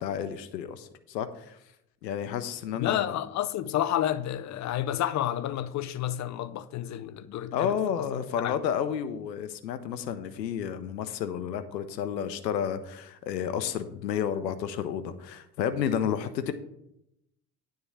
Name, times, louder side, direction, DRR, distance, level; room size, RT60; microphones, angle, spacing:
voice 1, 0.0-1.6 2.0-3.1 7.5-16.5, left 8 dB, 85° left, 0.8 m, -31 dB
voice 2, 2.7-7.7 8.4-8.6, left 12 dB, 35° left, 0.5 m, -30 dB
9.6 x 3.8 x 7.0 m
hypercardioid pair, 60°, 49 cm